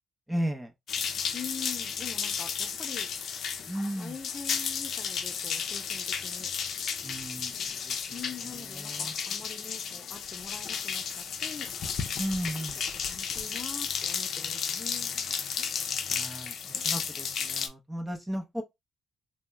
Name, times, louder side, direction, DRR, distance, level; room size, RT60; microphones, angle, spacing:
voice 1, 0.3-0.7 3.7-4.1 7.0-7.5 7.9-8.0 8.8-9.1 12.2-12.8 16.1-16.5 16.8-18.6, equal, 10° right, 0.6 m, -34 dB
sound 1, 0.9-17.7, left 7 dB, 65° left, 0.5 m, -33 dB
voice 2, 1.3-3.1 4.0-6.5 8.1-11.7 12.9-15.1, left 5 dB, 35° left, 0.8 m, -44 dB
2.8 x 2.1 x 3.3 m
cardioid pair, 90°, 0 cm